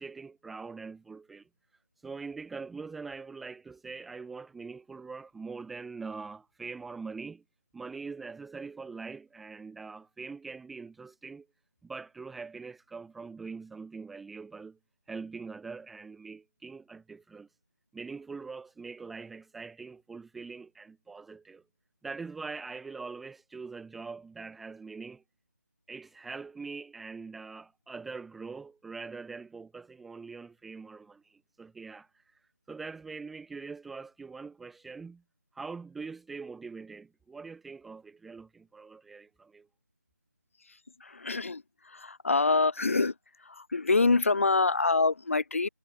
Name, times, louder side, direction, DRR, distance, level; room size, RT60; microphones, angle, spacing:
voice 1, 0.0-1.5 2.0-7.4 7.7-11.5 11.8-14.8 15.1-17.5 17.9-21.6 22.0-25.2 25.9-32.4 32.7-35.2 35.5-39.7, right 4 dB, ahead, 0.5 m, -43 dB
voice 2, 41.0-41.6 41.9-43.1 43.5-45.7, left 3 dB, 50° left, 2.3 m, -25 dB
figure-of-eight pair, 165°, 10 cm